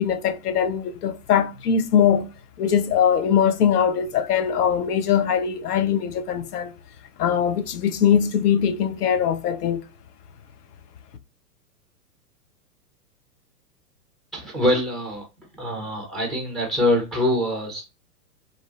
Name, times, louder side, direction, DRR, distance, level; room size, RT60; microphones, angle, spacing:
voice 1, 0.0-2.3 2.6-6.7 7.2-9.8, left 8 dB, 75° left, 0.7 m, -21 dB
voice 2, 14.3-15.3 15.6-17.8, left 1 dB, ahead, 0.7 m, -24 dB
2.7 x 2.0 x 2.9 m
hypercardioid pair, 120°, 47 cm